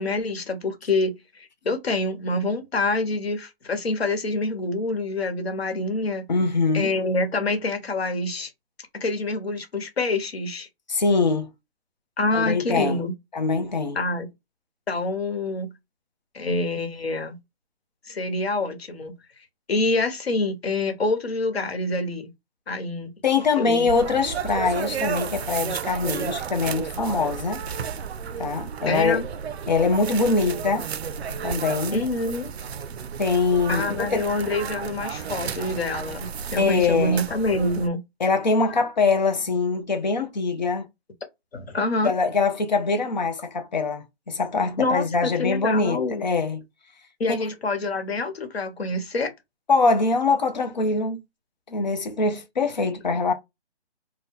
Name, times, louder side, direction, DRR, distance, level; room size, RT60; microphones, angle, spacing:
voice 1, 0.0-6.3 6.7-8.5 8.9-10.7 12.2-13.1 13.9-14.3 14.9-15.7 16.3-17.4 18.1-19.1 19.7-22.3 22.7-23.1 23.6-23.9 28.9-29.2 31.9-32.5 33.7-38.0 38.6-38.8 41.5-42.1 44.8-46.2 47.2-49.3, left 2 dB, 70° left, 1.1 m, -26 dB
voice 2, 6.3-6.9 10.9-11.5 12.3-13.0 13.3-14.0 23.2-27.6 28.4-29.2 29.7-30.9 31.4-32.0 33.2-34.3 36.6-37.2 38.2-40.9 42.0-46.6 49.7-51.2 51.7-53.3, left 4 dB, 45° left, 0.6 m, -23 dB
sound 1, 23.9-37.9, right 7 dB, 80° right, 0.5 m, -32 dB
2.8 x 2.1 x 3.5 m
hypercardioid pair, 170°, 31 cm